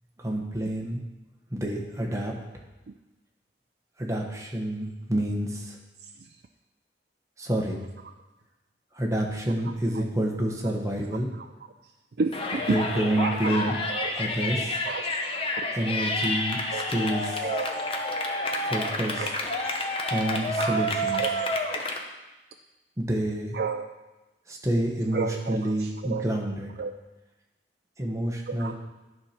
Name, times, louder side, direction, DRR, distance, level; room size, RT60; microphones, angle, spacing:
voice 1, 0.2-1.0 1.5-2.3 4.0-5.8 7.4-7.8 8.9-11.3 12.7-13.7 14.1-14.8 15.7-17.5 18.6-19.3 20.1-21.2 23.0-23.6 24.5-26.7 28.0-28.7, right 1 dB, 20° right, 0 dB, 1.2 m, -28 dB
voice 2, 12.2-12.8 13.1-13.3 13.9-14.1 14.8-15.3 15.6-15.7 16.7-16.9 17.4-17.7 19.2-19.3 19.6-19.9 20.6-20.9 21.1-21.5 23.5-23.9 25.1-26.3 26.8-26.9 28.5-28.7, right 4 dB, 60° right, 4 dB, 0.4 m, -31 dB
Yell, 12.3-22.0, left 1 dB, 30° left, 0.8 m, -29 dB
11.5 x 4.4 x 5.9 m, 1.1 s
head